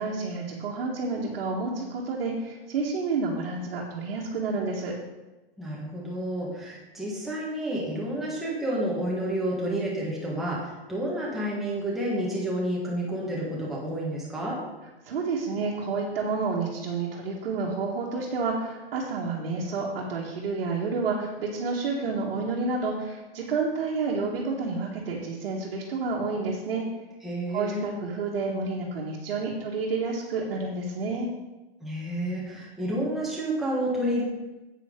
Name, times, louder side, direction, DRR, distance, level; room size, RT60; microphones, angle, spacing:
voice 1, 0.0-4.9 15.1-26.8 27.5-31.3, right 4 dB, 70° right, -4 dB, 1.9 m, -29 dB
voice 2, 5.6-14.5 27.2-27.8 31.8-34.2, right 1 dB, ahead, -6 dB, 1.5 m, -30 dB
8.8 x 8.3 x 3.8 m, 1.1 s
supercardioid pair, 170°, 31 cm